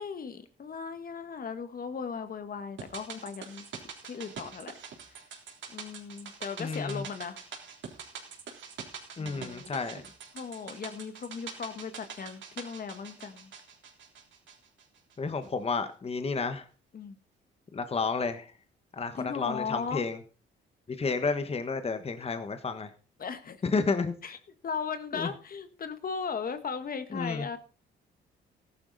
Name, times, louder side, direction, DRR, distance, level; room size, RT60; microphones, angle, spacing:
voice 1, 0.0-3.7 4.0-4.7 5.7-7.4 9.2-9.7 10.3-13.5 16.9-17.2 19.2-20.0 23.2-23.6 24.2-24.4 24.6-27.6, left 6 dB, 45° left, 10 dB, 1.5 m, -37 dB
sound 1, 2.8-15.1 15.4-15.5, right 6 dB, 70° right, 3.7 m, -45 dB
voice 2, 6.6-7.0 9.2-10.0 15.2-16.7 17.7-18.5 18.9-20.2 20.9-22.9 23.6-24.1 25.1-25.3 27.1-27.5, left 4 dB, 30° left, 9 dB, 1.4 m, -31 dB
14.5 x 11.5 x 4.1 m, 0.37 s
cardioid pair, 90°, 20 cm